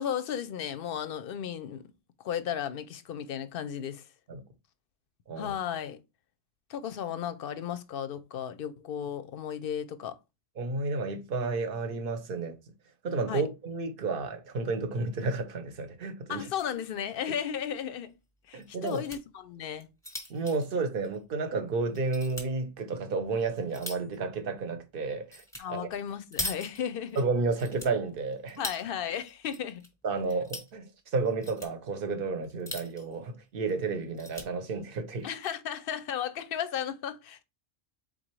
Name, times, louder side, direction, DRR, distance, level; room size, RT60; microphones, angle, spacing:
voice 1, 0.0-1.8 2.2-4.0 5.4-6.0 6.7-10.1 13.3-13.4 16.3-18.1 18.5-19.9 25.6-27.2 28.6-29.8 35.2-37.4, left 9 dB, 60° left, 0.7 m, -34 dB
voice 2, 10.6-12.6 13.0-16.5 18.5-19.0 20.3-25.4 25.7-25.9 27.2-28.6 30.0-35.3, right 3 dB, 55° right, 0.9 m, -31 dB
sound 1, 16.3-16.8 17.1-17.2 17.5-17.6 18.6-19.2 19.7-21.5 22.0-22.5 23.1-24.2 25.3-25.6 25.9-27.2 27.6-28.8 29.3-29.9 30.2-30.7 31.3-31.7 32.4-33.2 33.6-33.7 34.0-34.5 35.2-35.5, left 1 dB, 5° left, 1.1 m, -40 dB
4.0 x 3.8 x 3.1 m
omnidirectional pair, 1.2 m